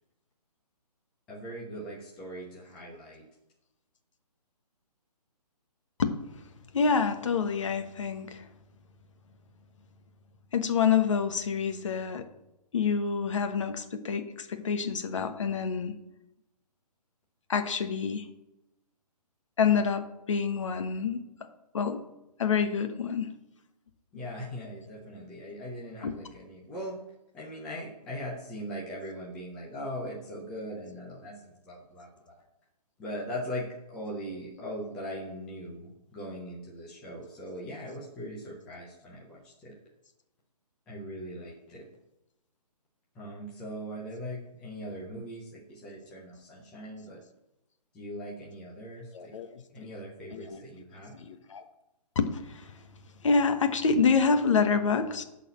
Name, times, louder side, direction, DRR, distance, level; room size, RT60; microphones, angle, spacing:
voice 1, 1.3-3.2 24.1-27.0 27.3-32.1 33.0-39.7 40.9-41.8 43.2-47.2 47.9-49.3 49.7-51.1, equal, 5° left, -5 dB, 0.4 m, -40 dB
voice 2, 6.7-8.5 10.5-12.3 12.7-15.9 17.5-18.3 19.6-21.2 21.7-22.1 22.4-23.3 26.0-26.1 49.1-49.6 50.3-50.6 51.1-51.6 52.1-52.7 53.2-55.2, left 5 dB, 50° left, 8 dB, 1.1 m, -27 dB
10.5 x 4.1 x 6.9 m, 0.90 s
hypercardioid pair, 170°, 20 cm